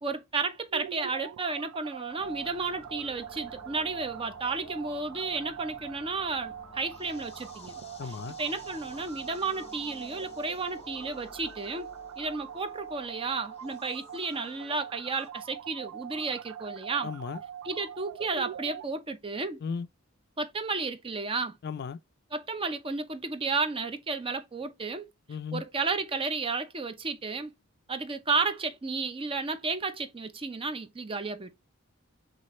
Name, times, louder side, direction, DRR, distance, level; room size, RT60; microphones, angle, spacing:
voice 1, 0.0-7.7 8.4-11.9 12.2-17.1 17.6-19.6 20.4-21.6 22.3-25.1 25.5-27.5 27.9-31.5, right 4 dB, 25° right, 0.5 m, -32 dB
sound 1, 0.7-18.9, right 10 dB, 85° right, 0.3 m, -43 dB
sound 2, 2.2-15.3, left 3 dB, 30° left, 0.8 m, -52 dB
voice 2, 8.0-8.4 17.0-17.4 19.6-19.9 21.6-22.0 25.3-25.6, left 6 dB, 50° left, 0.3 m, -35 dB
6.2 x 2.5 x 3.0 m
head